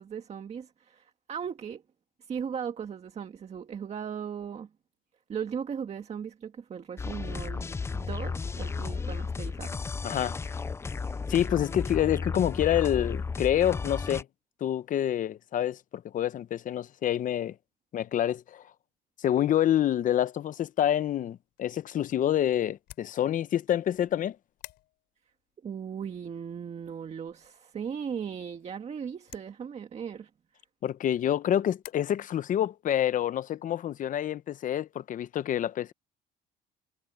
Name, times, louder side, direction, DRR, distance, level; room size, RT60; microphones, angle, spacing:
voice 1, 0.0-1.8 2.2-4.7 5.3-7.7 7.9-9.9 25.6-30.3, right 7 dB, 40° right, 1.7 m, -37 dB
sound 1, 7.0-14.2, left 4 dB, 15° left, 0.3 m, -33 dB
voice 2, 10.0-10.4 11.3-14.3 14.6-17.6 17.9-18.7 19.2-24.4 30.8-35.9, left 11 dB, 50° left, 0.8 m, -27 dB
sound 2, 21.4-31.9, left 15 dB, 80° left, 3.9 m, -56 dB
cardioid pair, 110°, 17 cm